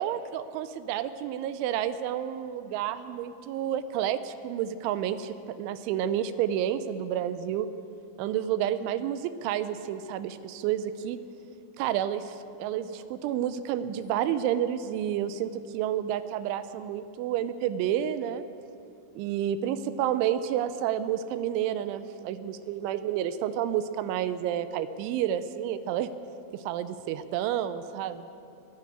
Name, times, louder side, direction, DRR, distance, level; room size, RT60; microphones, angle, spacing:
voice 1, 0.0-7.7 8.2-11.2 11.8-18.5 19.2-26.1 26.5-28.3, right 10 dB, 90° right, 12 dB, 3.1 m, -30 dB
22.0 x 7.3 x 8.8 m, 2.8 s
omnidirectional pair, 5.3 m